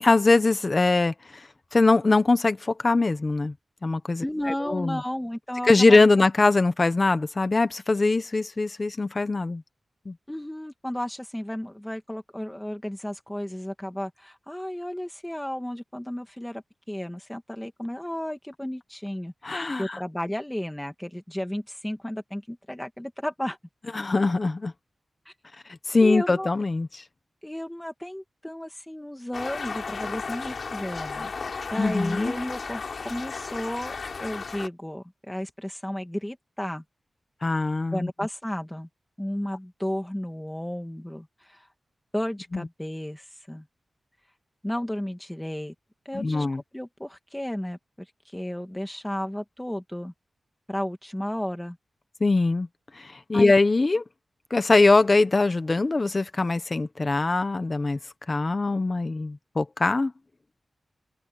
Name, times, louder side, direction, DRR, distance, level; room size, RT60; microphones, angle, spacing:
voice 1, 0.0-1.4 1.7-3.5 3.8-4.2 4.7-5.0 5.7-9.6 10.0-10.1 19.4-20.0 23.9-24.7 25.9-26.9 31.7-32.3 37.4-38.1 42.5-42.7 46.1-46.6 52.2-52.7 52.9-54.0 54.5-58.0 58.3-60.1, left 3 dB, 30° left, 1.3 m, -22 dB
voice 2, 4.2-6.1 10.3-16.6 16.9-23.6 25.3-25.4 26.0-26.5 27.4-31.4 31.7-33.9 34.2-36.8 37.9-38.9 39.2-41.7 42.1-43.7 44.6-45.7 46.0-46.5 46.7-48.1 48.3-50.1 50.7-51.8 53.3-53.5, left 1 dB, 5° left, 2.6 m, -33 dB
sound 1, 29.3-34.7, left 4 dB, 60° left, 5.3 m, -34 dB
wide cardioid pair, 135°, 0 cm